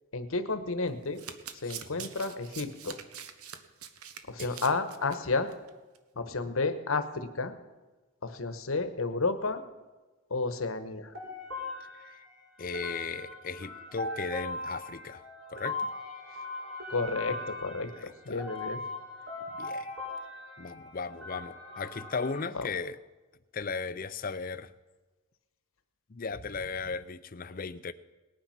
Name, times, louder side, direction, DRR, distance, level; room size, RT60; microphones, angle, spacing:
voice 1, 0.1-1.2 1.6-3.0 4.3-5.5 6.2-7.5 8.2-9.6 10.3-11.1 16.9-18.8 22.5-22.7, left 3 dB, 70° left, 10 dB, 1.1 m, -31 dB
Domestic sounds home sounds, 0.9-5.2 5.5-5.7 5.9-6.0, right 8 dB, 85° right, 1.0 m, -44 dB
voice 2, 1.6-2.1 4.4-4.6 6.2-6.4 12.6-15.2 15.5-15.9 17.9-18.5 19.6-19.8 20.6-23.0 23.5-24.7 26.1-27.9, left 4 dB, 40° left, 14 dB, 0.5 m, -37 dB
sound 1, 11.1-22.4, left 2 dB, 60° right, 6.1 m, -40 dB
19.0 x 9.1 x 5.8 m, 1.2 s
head